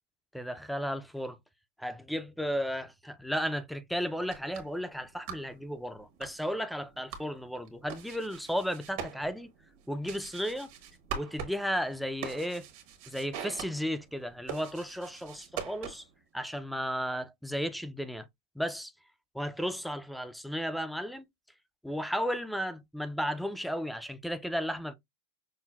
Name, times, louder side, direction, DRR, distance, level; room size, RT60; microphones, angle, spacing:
voice 1, 0.3-1.4 1.8-9.5 9.9-10.7 11.1-12.7 13.1-16.0 16.3-18.3 18.6-18.9 19.3-21.2 21.8-24.9, equal, ahead, 0.3 m, -34 dB
sound 1, 4.1-16.2, right 7 dB, 60° right, 1.1 m, -44 dB
5.6 x 2.1 x 2.2 m
supercardioid pair, 130°, 0 cm